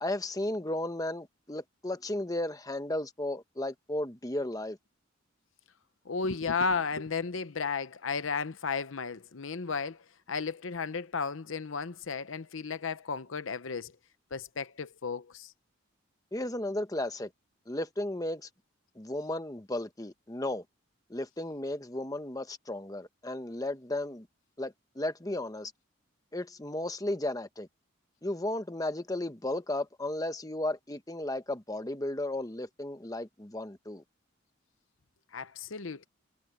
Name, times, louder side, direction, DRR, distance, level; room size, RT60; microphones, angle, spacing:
voice 1, 0.0-4.8 16.3-17.3 17.7-18.5 19.0-20.6 21.1-24.3 24.6-25.7 26.3-27.7 28.2-34.0, left 1 dB, 15° left, 1.0 m, -34 dB
voice 2, 6.1-13.9 14.3-15.5 35.3-36.1, left 5 dB, 75° left, 0.8 m, -34 dB
head